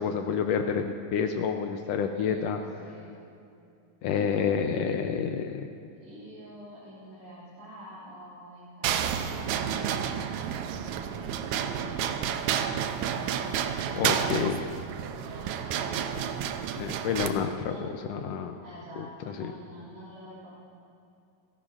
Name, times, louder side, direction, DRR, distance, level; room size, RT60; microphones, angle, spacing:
voice 1, 0.0-2.6 4.0-5.7 13.9-14.6 16.8-17.8 18.1-18.6 19.0-19.5, left 7 dB, 90° left, 5 dB, 1.4 m, -29 dB
voice 2, 2.1-3.1 6.0-12.4 15.0-16.0 17.5-18.0 18.6-20.5, equal, 55° right, -10 dB, 4.4 m, -47 dB
sound 1, 8.8-17.3, right 8 dB, 80° right, 1.9 m, -30 dB
29.5 x 11.5 x 2.5 m, 2.6 s
omnidirectional pair, 3.6 m